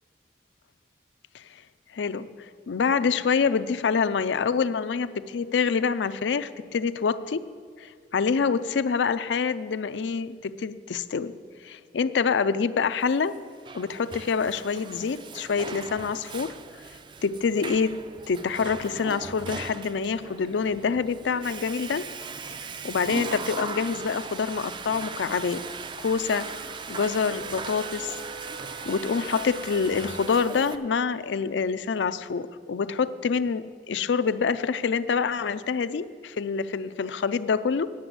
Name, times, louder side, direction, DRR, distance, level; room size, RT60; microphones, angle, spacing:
voice 1, 1.9-2.3 2.7-7.4 7.8-11.3 11.6-13.4 13.7-16.5 17.2-18.0 18.3-22.1 22.8-25.6 26.0-26.5 26.9-28.1 28.9-37.9, left 5 dB, 85° left, 13 dB, 0.4 m, -26 dB
Water / Toilet flush, 13.3-30.8, right 5 dB, 25° right, 0.3 m, -39 dB
Wind instrument woodwind instrument, 26.7-30.7, right 2 dB, 55° right, 0.8 m, -45 dB
9.6 x 7.0 x 7.5 m, 2.1 s
head